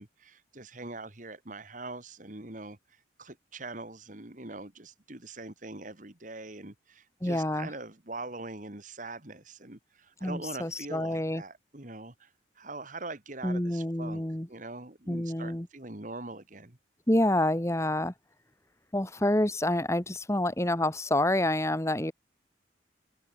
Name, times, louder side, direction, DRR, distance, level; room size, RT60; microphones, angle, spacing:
voice 1, 0.0-14.2 14.5-16.8, right 2 dB, 40° right, 2.2 m, -43 dB
voice 2, 7.2-7.7 10.2-11.4 13.4-14.5 15.1-15.7 17.1-18.1 18.9-22.1, left 1 dB, 15° left, 1.3 m, -28 dB
head